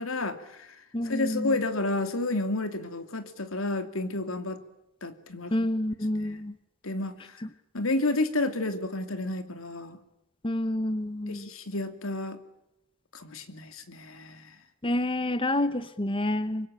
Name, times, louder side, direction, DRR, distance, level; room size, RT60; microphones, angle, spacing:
voice 1, 0.0-0.8 1.0-4.6 5.0-5.5 6.1-6.4 6.8-7.4 7.7-10.0 11.3-12.4 13.1-14.6, left 2 dB, 85° left, 10 dB, 2.7 m, -31 dB
voice 2, 0.9-1.5 5.5-6.5 10.4-11.5 14.8-16.7, left 1 dB, 25° left, 14 dB, 1.0 m, -28 dB
25.5 x 23.0 x 8.9 m, 0.86 s
head